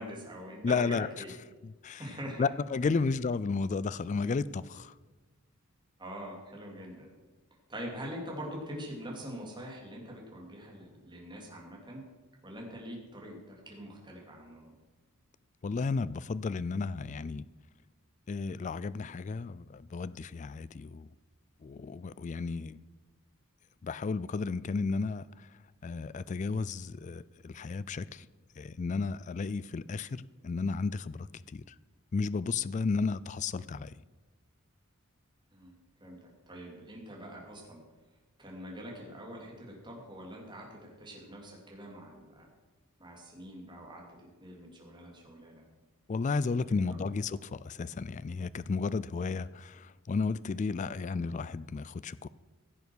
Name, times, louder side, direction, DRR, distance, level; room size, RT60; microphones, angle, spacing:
voice 1, 0.0-1.3 2.0-2.5 3.0-3.1 6.0-7.1 7.7-12.0 12.4-14.7 35.5-35.7 36.0-36.2 36.5-37.8 38.4-42.5 43.0-45.6 46.2-47.0, equal, 20° right, 3.0 m, -44 dB
voice 2, 0.6-1.1 1.6-2.1 2.4-4.9 15.6-17.4 18.3-21.1 21.6-22.8 23.8-25.5 25.8-28.3 28.6-31.8 32.1-33.9 46.1-52.3, left 4 dB, 35° left, 0.3 m, -33 dB
16.0 x 7.1 x 6.3 m
head